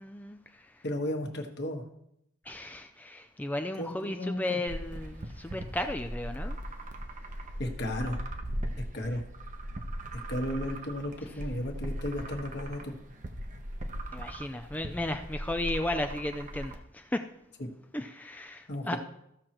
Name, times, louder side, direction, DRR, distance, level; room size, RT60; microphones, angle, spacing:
voice 1, 0.0-0.8 2.4-6.6 14.1-17.2 17.9-19.0, left 1 dB, 10° left, 6 dB, 0.4 m, -35 dB
voice 2, 0.8-1.8 3.8-4.6 7.6-8.2 8.9-9.2 10.1-12.9 18.7-19.0, left 1 dB, 55° left, 3 dB, 1.4 m, -34 dB
sound 1, 4.7-16.7, equal, 40° right, 0.8 m, -39 dB
15.0 x 6.2 x 3.0 m, 0.78 s
head